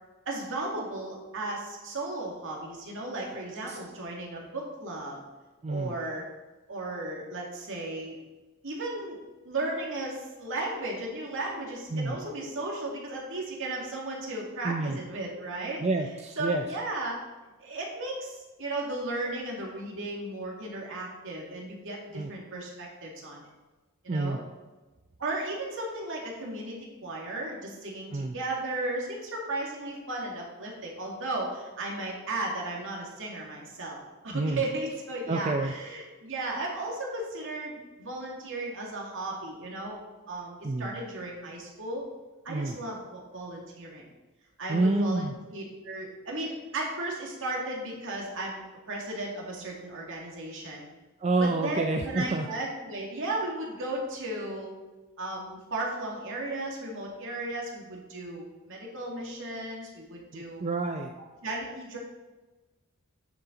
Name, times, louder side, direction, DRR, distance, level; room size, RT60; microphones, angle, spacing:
voice 1, 0.3-5.2 5.7-6.2 6.7-8.2 8.6-9.2 9.4-15.8 16.4-17.2 17.6-23.5 24.0-24.4 25.2-40.0 40.3-42.0 42.4-44.0 44.6-50.8 51.4-54.7 55.2-60.6 61.4-62.0, right 2 dB, 65° right, -2 dB, 2.3 m, -35 dB
voice 2, 5.6-5.9 11.9-12.2 14.6-15.0 15.8-16.6 22.1-22.3 24.1-24.4 28.1-28.4 34.3-34.6 35.3-35.7 40.6-40.9 42.5-42.8 44.7-45.3 51.2-52.5 60.3-61.1, right 2 dB, 30° right, 4 dB, 0.5 m, -28 dB
9.6 x 6.9 x 3.9 m, 1.2 s
head